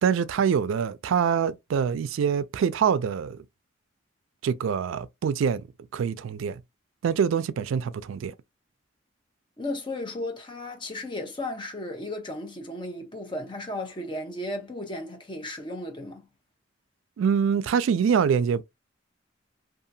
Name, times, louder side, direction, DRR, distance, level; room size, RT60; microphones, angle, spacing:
voice 1, 0.0-3.4 4.4-5.6 5.9-6.6 7.0-8.3 17.2-18.6, right 7 dB, 80° right, 0.3 m, -25 dB
voice 2, 9.6-16.3, left 1 dB, 25° left, 0.6 m, -35 dB
2.8 x 2.4 x 2.6 m
head